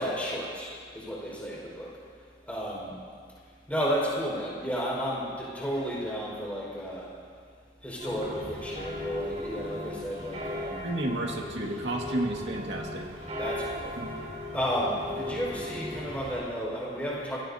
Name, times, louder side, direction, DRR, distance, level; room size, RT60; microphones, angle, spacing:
voice 1, 0.0-2.0 2.4-3.0 3.7-7.1 7.8-10.9 13.4-14.0 14.5-17.4, equal, 10° left, -6 dB, 5.1 m, -32 dB
sound 1, 8.0-16.4, left 1 dB, 40° right, 4.9 m, -37 dB
voice 2, 10.8-13.1 14.0-14.1, right 1 dB, 80° right, 0 dB, 2.0 m, -31 dB
27.5 x 17.5 x 2.8 m, 2.1 s
head